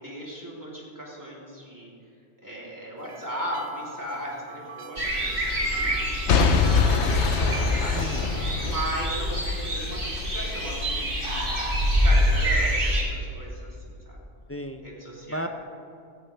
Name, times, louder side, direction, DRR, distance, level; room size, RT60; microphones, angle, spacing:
voice 1, 0.0-1.9 2.4-7.0 7.3-8.0 8.6-11.5 11.9-14.2 14.8-15.5, right 1 dB, 15° right, -5 dB, 3.4 m, -37 dB
sound 1, 3.0-8.6, right 3 dB, 75° right, 1.3 m, -43 dB
sound 2, 5.0-13.0, equal, 50° right, 2.2 m, -26 dB
Boom / Shatter / Crushing, 6.3-10.3 10.8-10.9, left 5 dB, 90° left, 1.1 m, -24 dB
voice 2, 7.9-8.5 14.5-14.8 15.3-15.5, equal, 15° left, 6 dB, 0.5 m, -34 dB
18.0 x 14.5 x 3.4 m, 2.6 s
omnidirectional pair, 1.1 m